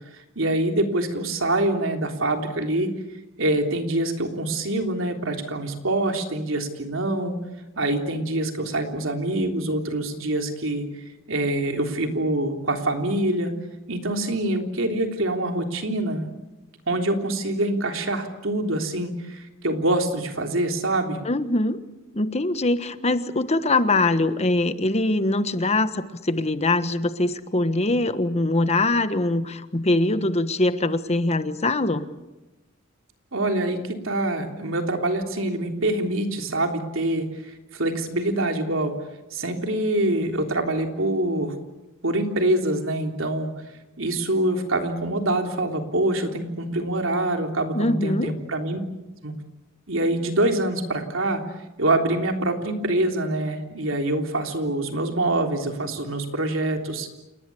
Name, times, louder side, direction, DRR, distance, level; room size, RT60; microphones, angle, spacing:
voice 1, 0.4-2.9 3.4-7.3 7.8-13.5 13.9-16.3 16.9-21.2 33.3-38.9 39.3-41.6 42.0-43.5 44.0-48.8 49.2-49.3 49.9-51.4 51.8-57.1, right 1 dB, 75° right, 4 dB, 3.5 m, -25 dB
voice 2, 21.2-21.8 22.1-32.0 47.7-48.3, left 2 dB, 30° left, 11 dB, 1.3 m, -23 dB
29.0 x 19.5 x 8.5 m, 1.0 s
head